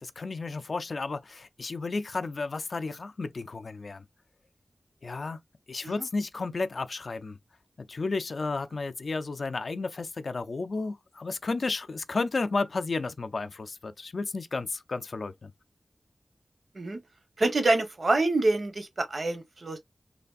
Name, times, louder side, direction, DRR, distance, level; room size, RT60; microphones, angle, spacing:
voice 1, 0.0-4.0 5.0-5.4 5.7-7.4 7.8-15.5, left 3 dB, 70° left, 0.3 m, -32 dB
voice 2, 17.4-19.8, right 2 dB, 60° right, 0.7 m, -26 dB
3.3 x 2.4 x 2.3 m
wide cardioid pair, 70°, 0 cm